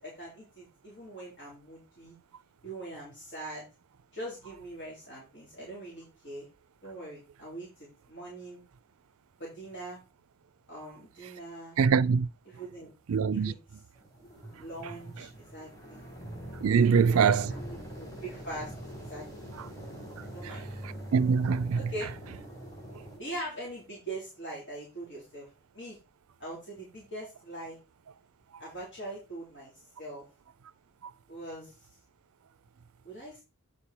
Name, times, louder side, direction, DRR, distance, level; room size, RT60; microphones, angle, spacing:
voice 1, 0.0-2.2 2.6-3.6 4.1-6.5 6.8-8.6 9.4-10.0 10.7-11.8 12.5-12.9 13.3-13.6 14.6-16.1 16.8-18.7 19.0-19.5 20.2-20.7 21.8-22.1 23.2-25.5 25.7-26.0 26.4-27.8 28.6-30.2 31.3-31.9 33.0-33.4, right 1 dB, 55° left, 3.5 m, -42 dB
voice 2, 11.8-12.3 13.1-13.5 16.6-17.5 21.1-21.8, right 6 dB, 65° right, 0.4 m, -23 dB
sound 1, 13.9-23.2, right 1 dB, 15° left, 3.9 m, -43 dB
8.4 x 5.3 x 4.3 m
head